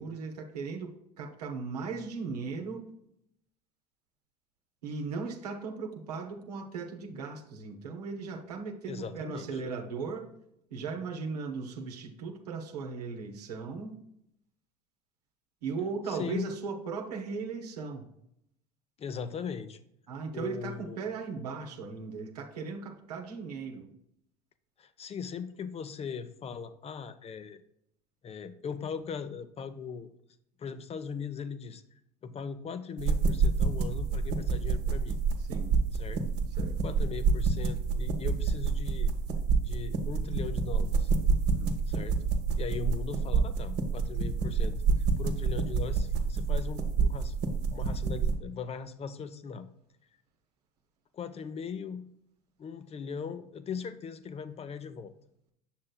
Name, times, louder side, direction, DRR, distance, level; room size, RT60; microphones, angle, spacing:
voice 1, 0.0-2.8 4.8-10.3 10.7-14.0 15.6-18.0 20.1-23.9 35.5-35.8 36.6-36.8 41.5-41.7, right 4 dB, 85° right, 3 dB, 0.9 m, -37 dB
voice 2, 8.9-9.5 16.1-16.5 19.0-19.8 20.3-21.0 24.8-27.6 28.2-30.1 30.6-31.8 32.2-35.2 35.9-36.2 36.8-39.1 39.6-41.1 41.9-42.2 42.6-49.7 51.1-52.1 52.6-55.1, left 6 dB, 30° left, 12 dB, 0.7 m, -39 dB
sound 1, 33.0-48.3, right 4 dB, 60° right, 1.0 m, -28 dB
7.3 x 6.4 x 2.2 m, 0.76 s
hypercardioid pair, 75°, 20 cm